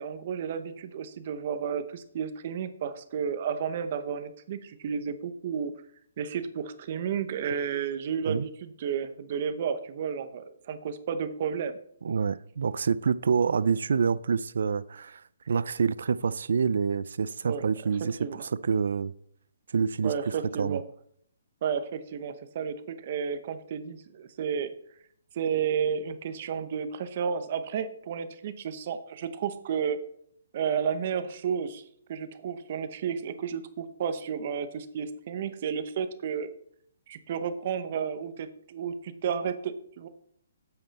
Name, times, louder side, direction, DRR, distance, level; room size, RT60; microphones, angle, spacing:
voice 1, 0.0-5.7 6.2-11.8 17.4-17.6 18.2-18.5 20.0-20.8 21.6-24.7 25.3-30.0 30.5-31.8 32.1-36.5 37.1-40.1, right 7 dB, 35° right, 0.7 m, -32 dB
voice 2, 12.0-15.2 15.5-19.1 19.7-20.8, right 6 dB, 65° right, 0.4 m, -27 dB
8.9 x 7.9 x 4.1 m
hypercardioid pair, 175°, 0 cm